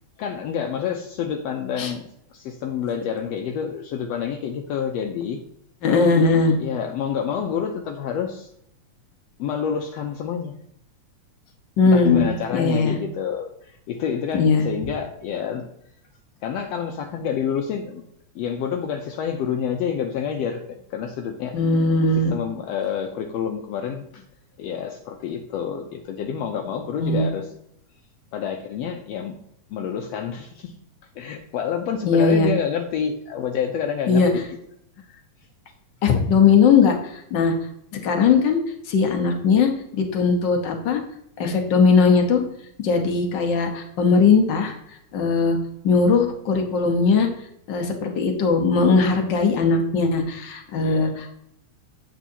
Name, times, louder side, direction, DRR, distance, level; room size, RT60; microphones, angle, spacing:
voice 1, 0.2-5.4 6.6-8.5 9.4-10.5 11.9-15.7 16.4-18.0 18.3-21.6 22.3-24.2 24.6-27.5 28.3-29.4 29.7-30.7 31.1-34.4 50.7-51.2, left 7 dB, 75° left, 4 dB, 1.6 m, -28 dB
voice 2, 5.8-6.6 11.8-12.2 12.5-13.0 14.3-14.7 21.5-22.3 27.0-27.3 32.1-32.5 34.1-34.3 36.0-37.5 38.0-38.6 38.9-39.7 40.0-41.0 41.4-42.4 42.8-44.7 45.1-45.6 45.8-47.3 47.7-51.3, left 4 dB, 60° left, 4 dB, 1.2 m, -19 dB
9.0 x 7.7 x 2.8 m, 0.75 s
omnidirectional pair, 3.3 m